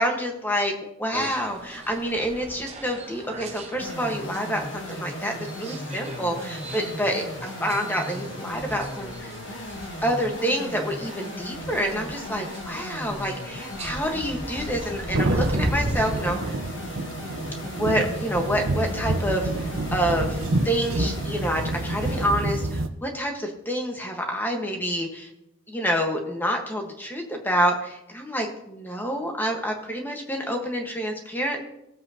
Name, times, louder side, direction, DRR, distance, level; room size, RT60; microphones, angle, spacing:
voice 1, 0.0-9.3 10.0-16.6 17.6-20.4 20.6-25.3 25.7-31.6, equal, 10° left, 2 dB, 1.3 m, -28 dB
sound 1, 1.1-16.2, right 1 dB, 30° right, 1.0 m, -37 dB
sound 2, 3.8-22.3, left 1 dB, 60° left, 1.2 m, -37 dB
sound 3, 15.1-22.9, right 2 dB, 75° right, 0.8 m, -28 dB
17.5 x 7.8 x 2.8 m, 0.86 s
head